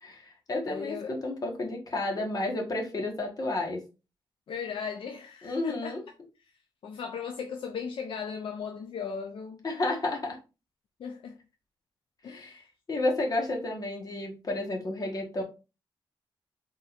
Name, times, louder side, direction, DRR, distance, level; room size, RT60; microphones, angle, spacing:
voice 1, 0.0-3.8 5.4-6.0 9.6-10.4 12.2-15.4, left 2 dB, 40° left, 1.3 m, -31 dB
voice 2, 0.7-1.2 4.5-6.0 6.8-9.6 11.0-11.4 12.2-12.6, left 6 dB, 70° left, 0.5 m, -37 dB
4.2 x 3.7 x 2.5 m
wide cardioid pair, 130°, 9 cm